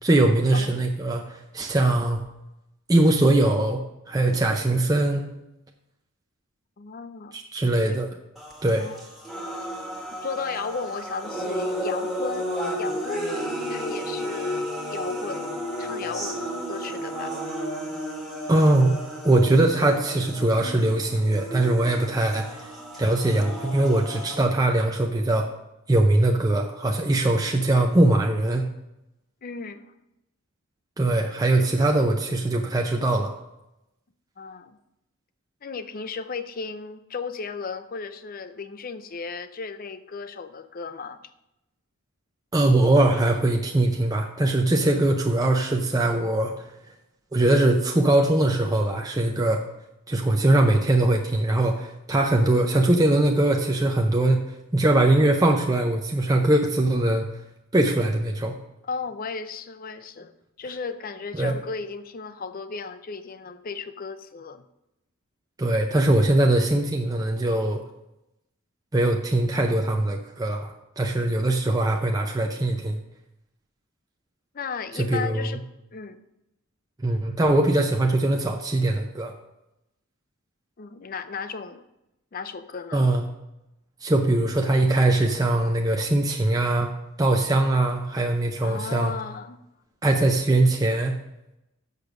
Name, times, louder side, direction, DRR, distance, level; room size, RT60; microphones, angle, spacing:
voice 1, 0.0-2.2 2.9-3.8 4.1-5.3 7.3-8.1 8.6-8.9 18.5-22.5 23.0-25.5 25.9-28.6 31.0-33.3 42.5-46.5 47.3-49.6 50.1-57.3 57.7-58.5 61.4-61.6 65.6-67.8 68.9-73.0 75.0-75.5 77.0-79.3 82.9-83.2 84.0-86.9 87.2-89.1 90.0-91.2, right 2 dB, 15° right, 2 dB, 0.5 m, -21 dB
voice 2, 6.8-7.3 7.9-8.0 8.8-9.0 10.1-12.5 12.8-13.4 13.7-15.5 15.8-17.3 29.4-29.9 31.5-31.7 34.4-34.8 35.6-41.2 58.8-64.6 74.5-75.6 75.9-76.2 80.8-81.8 82.3-83.1 88.6-89.6, left 5 dB, 40° left, 12 dB, 0.5 m, -35 dB
sound 1, 8.4-24.4, equal, ahead, 1.3 m, -33 dB
6.8 x 6.6 x 6.1 m, 0.90 s
head